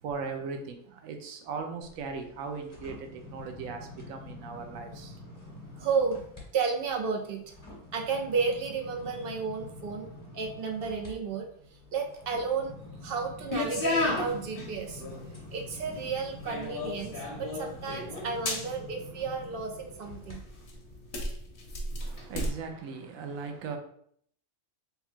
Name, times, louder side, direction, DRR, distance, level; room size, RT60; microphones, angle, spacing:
voice 1, 0.0-5.2 22.0-23.8, right 5 dB, 80° right, 1.1 m, -38 dB
sound 1, 1.8-6.4 6.8-20.4 20.8-21.0, left 2 dB, 15° left, 1.4 m, -47 dB
voice 2, 5.8-6.2 6.5-7.4 7.9-10.1 10.3-11.5 11.9-15.0 15.5-20.5, right 5 dB, 55° right, 0.7 m, -32 dB
sound 2, 13.5-22.5, left 2 dB, 50° left, 0.9 m, -35 dB
3.5 x 2.3 x 4.4 m
omnidirectional pair, 1.4 m